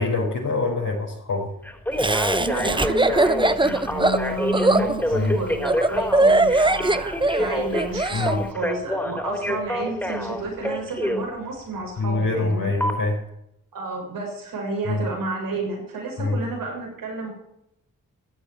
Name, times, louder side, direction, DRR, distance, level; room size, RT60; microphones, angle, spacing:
voice 1, 0.0-1.5 5.1-5.4 8.1-8.4 12.0-13.2 14.8-15.0 16.2-16.4, left 3 dB, 70° left, -5 dB, 5.0 m, -24 dB
Telephone, 1.6-11.2 12.8-12.9, left 1 dB, 5° left, 3.6 m, -27 dB
Laughter, 2.0-8.3, right 2 dB, 15° right, 1.0 m, -21 dB
voice 2, 2.4-12.7 13.7-17.3, right 2 dB, 80° right, -1 dB, 6.9 m, -31 dB
14.5 x 9.0 x 9.1 m, 0.78 s
cardioid pair, 65°, 33 cm